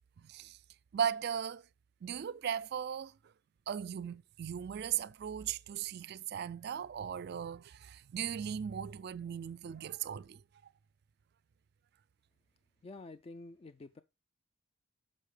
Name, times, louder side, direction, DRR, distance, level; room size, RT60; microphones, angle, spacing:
voice 1, 0.2-0.6 0.9-1.6 2.0-3.2 3.7-10.4, right 8 dB, 55° right, 0.3 m, -37 dB
voice 2, 12.8-14.0, left 2 dB, 30° left, 0.3 m, -49 dB
6.5 x 5.4 x 4.9 m
head